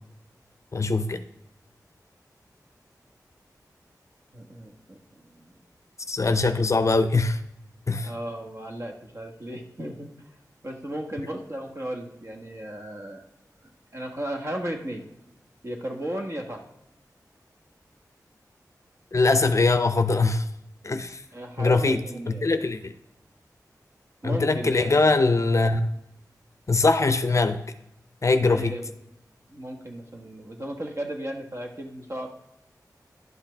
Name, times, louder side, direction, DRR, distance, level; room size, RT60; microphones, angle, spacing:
voice 1, 0.7-1.2 6.1-7.4 7.9-8.1 19.1-20.4 20.8-21.2 21.6-22.9 24.2-25.9 26.7-27.6 28.2-28.7, left 3 dB, 45° left, 10 dB, 0.5 m, -22 dB
voice 2, 4.3-5.5 8.0-10.1 10.6-13.2 13.9-15.0 15.6-16.6 21.3-22.5 24.2-25.0 28.4-28.9 29.5-32.3, right 1 dB, 45° right, 2 dB, 1.4 m, -35 dB
11.0 x 5.8 x 3.3 m, 0.86 s
wide cardioid pair, 65°, 7 cm